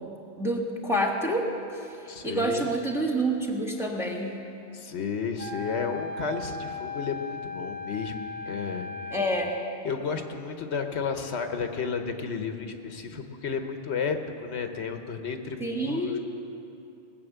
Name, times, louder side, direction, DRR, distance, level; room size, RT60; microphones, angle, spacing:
voice 1, 0.0-4.3 9.1-9.5 15.6-16.2, right 1 dB, ahead, 0 dB, 1.4 m, -28 dB
voice 2, 2.1-2.7 4.7-8.9 9.8-16.2, left 5 dB, 75° left, 6 dB, 1.2 m, -32 dB
Wind instrument woodwind instrument, 5.4-9.8, left 3 dB, 90° right, 1.1 m, -37 dB
20.0 x 6.7 x 8.0 m, 2.7 s
omnidirectional pair, 1.1 m